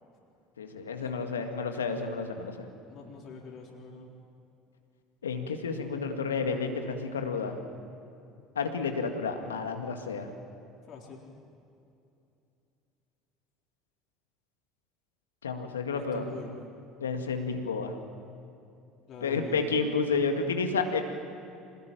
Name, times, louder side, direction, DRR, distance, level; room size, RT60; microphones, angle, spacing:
voice 1, 0.6-2.7 5.2-7.6 8.6-10.3 15.4-16.3 17.0-18.0 19.2-21.0, left 4 dB, 85° left, 5 dB, 2.0 m, -31 dB
voice 2, 2.9-4.1 10.9-11.2 15.9-16.6 19.1-19.8, left 4 dB, 50° left, -1 dB, 4.1 m, -44 dB
26.0 x 20.0 x 9.1 m, 2.7 s
hypercardioid pair, 65°, 0 cm